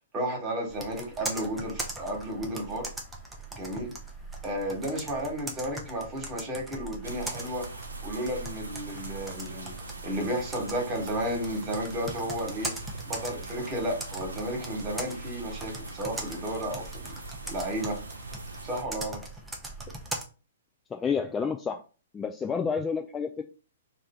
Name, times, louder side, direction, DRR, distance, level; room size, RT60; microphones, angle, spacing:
voice 1, 0.1-2.9 3.5-3.9 4.4-9.7 10.0-12.7 13.1-17.2 17.5-18.0 18.6-19.2, right 1 dB, 25° right, 1 dB, 1.5 m, -33 dB
Computer keyboard, 0.7-20.2, right 2 dB, 5° right, 0.7 m, -40 dB
sound 1, 7.0-18.8, right 2 dB, 75° right, 0.8 m, -42 dB
voice 2, 20.9-21.8 22.1-23.4, left 6 dB, 15° left, 4 dB, 0.3 m, -29 dB
3.2 x 2.6 x 4.3 m, 0.34 s
figure-of-eight pair, 115°, 0 cm